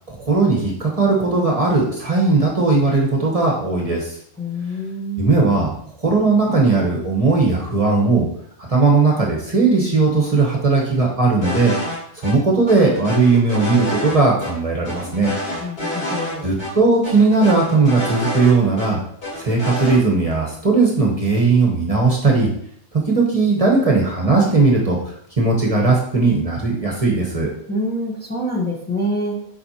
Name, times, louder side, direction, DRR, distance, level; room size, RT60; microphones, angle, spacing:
voice 1, 0.1-4.2 5.2-5.7 6.0-8.3 8.7-11.7 12.1-15.3 16.4-19.0 19.4-22.5 23.1-25.0 25.4-27.5, right 3 dB, 35° right, -1 dB, 1.2 m, -17 dB
voice 2, 4.4-5.3 15.6-16.5 27.7-29.5, equal, 10° left, -3 dB, 1.0 m, -26 dB
sound 1, 11.4-12.0 12.2-12.3 12.7-14.2 14.4-14.5 14.8-16.3 16.6-16.7 17.0-18.9 19.2-20.0, left 1 dB, 65° left, 2.4 m, -27 dB
7.6 x 4.7 x 2.9 m, 0.67 s
omnidirectional pair, 1.1 m